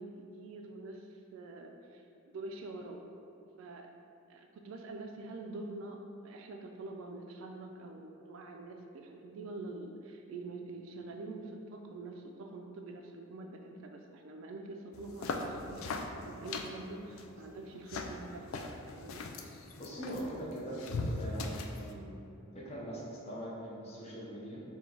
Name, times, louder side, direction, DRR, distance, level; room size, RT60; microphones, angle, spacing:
voice 1, 0.0-2.1 2.3-3.0 3.6-3.9 4.3-19.2, right 2 dB, 70° right, 4 dB, 0.3 m, -45 dB
sound 1, 14.9-21.9, left 3 dB, 75° left, 0.3 m, -40 dB
voice 2, 19.8-24.6, equal, 30° left, -5 dB, 0.6 m, -42 dB
4.5 x 2.2 x 3.8 m, 2.7 s
head